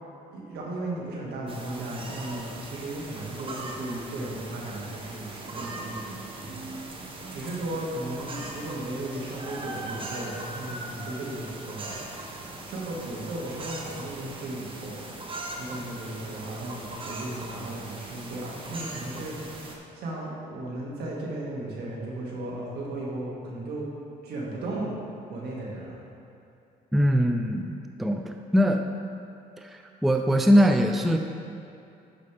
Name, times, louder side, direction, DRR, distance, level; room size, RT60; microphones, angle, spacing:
voice 1, 0.3-6.0 7.3-12.0 12.6-15.0 15.6-19.6 19.9-23.9 24.2-25.0 25.3-26.0, right 1 dB, 70° right, -4 dB, 1.9 m, -35 dB
sound 1, 1.5-19.8, right 2 dB, 30° right, 1.1 m, -40 dB
voice 2, 26.9-28.9 29.6-31.2, equal, ahead, 5 dB, 0.4 m, -22 dB
12.0 x 5.2 x 3.4 m, 2.6 s
cardioid pair, 110°, 17 cm